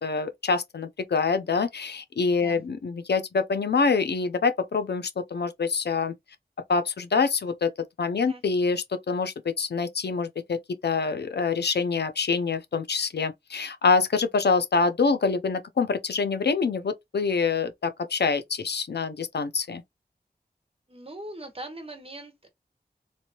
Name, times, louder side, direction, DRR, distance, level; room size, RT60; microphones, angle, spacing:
voice 1, 0.0-6.1 6.7-7.7 8.0-19.8, left 4 dB, 85° left, 0.5 m, -26 dB
voice 2, 20.9-22.5, right 1 dB, 35° right, 1.1 m, -41 dB
3.2 x 2.5 x 2.8 m
wide cardioid pair, 70°, 17 cm